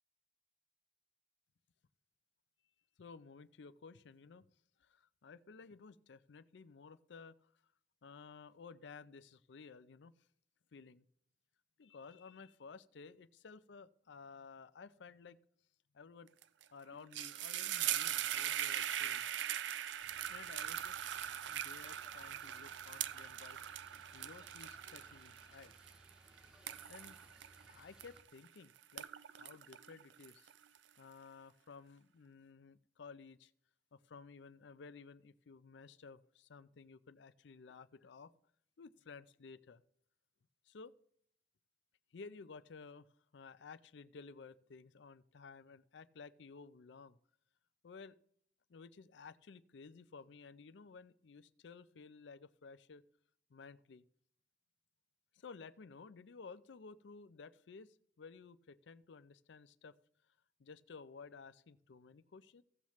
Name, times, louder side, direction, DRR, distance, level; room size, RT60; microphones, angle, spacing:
voice 1, 3.0-4.5 4.8-7.5 8.0-10.1 10.7-11.0 11.8-15.4 15.9-16.3 16.7-19.3 20.3-23.6 24.1-25.7 26.9-27.2 27.5-30.5 31.0-33.5 33.9-38.3 38.8-39.8 40.7-41.0 42.1-43.1 43.3-47.2 47.8-48.2 48.7-53.0 53.5-54.0 55.3-60.0 60.6-62.6, left 5 dB, 70° left, 15 dB, 0.5 m, -55 dB
sound 1, 16.4-16.6 16.9-28.5 28.8-30.8, right 11 dB, 75° right, 0.4 m, -41 dB
sound 2, 20.0-28.2, equal, 5° right, 1.1 m, -64 dB
16.0 x 7.2 x 3.1 m, 0.66 s
head